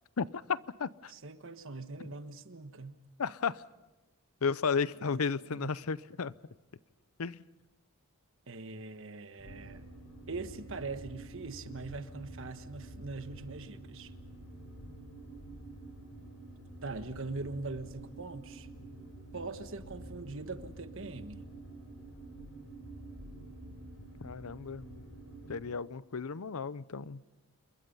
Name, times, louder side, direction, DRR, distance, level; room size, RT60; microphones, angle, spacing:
voice 1, 0.2-1.1 3.2-3.6 4.4-6.3 7.2-7.4 24.2-25.0 25.5-27.2, left 5 dB, 80° left, 0.6 m, -33 dB
voice 2, 1.1-3.0 5.5-5.7 8.5-9.8 10.3-14.1 16.8-18.7 19.3-21.4, right 3 dB, 60° right, 1.4 m, -42 dB
sound 1, 9.4-25.6, right 1 dB, 65° left, 7.2 m, -48 dB
27.5 x 22.0 x 5.5 m
head